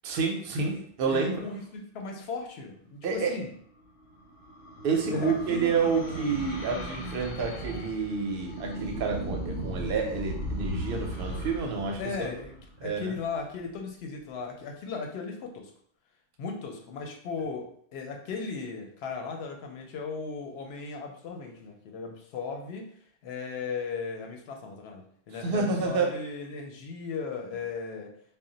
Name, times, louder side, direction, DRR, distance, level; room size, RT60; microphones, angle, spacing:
voice 1, 0.0-1.4 3.0-3.4 4.8-12.3 12.8-13.2 25.4-26.1, right 5 dB, 60° right, 2 dB, 0.7 m, -29 dB
voice 2, 1.1-3.5 5.1-6.4 12.0-12.5 12.8-15.7 16.4-22.9 23.2-28.1, left 4 dB, 65° left, 3 dB, 0.7 m, -37 dB
sound 1, 3.6-13.2, right 1 dB, 90° left, 0.9 m, -37 dB
2.1 x 2.0 x 3.8 m, 0.62 s
omnidirectional pair, 1.3 m